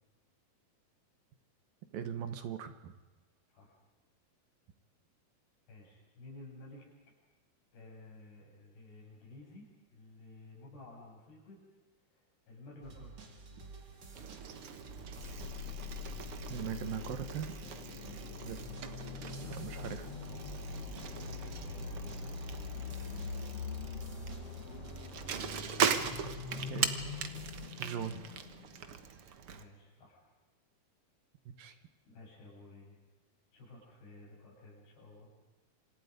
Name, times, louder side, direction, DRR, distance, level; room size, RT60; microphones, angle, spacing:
voice 1, 1.9-2.9 16.5-17.6 18.4-18.6 19.4-20.1 26.7-27.2 27.8-28.3 31.5-31.8, right 8 dB, 70° right, 9 dB, 2.9 m, -40 dB
voice 2, 5.7-6.9 7.7-11.6 12.1-13.3 18.1-18.5 20.9-21.4 21.7-23.5 26.5-26.7 29.5-30.3 32.1-33.0 33.5-35.3, left 2 dB, 80° left, -2 dB, 9.4 m, -54 dB
sound 1, 12.8-27.7, right 4 dB, 30° right, 2.5 m, -51 dB
Bicycle, 14.1-29.6, right 7 dB, 90° right, 1.2 m, -40 dB
sound 2, 15.2-28.9, left 6 dB, 60° left, 1.6 m, -43 dB
27.5 x 27.0 x 5.3 m, 1.2 s
omnidirectional pair, 4.6 m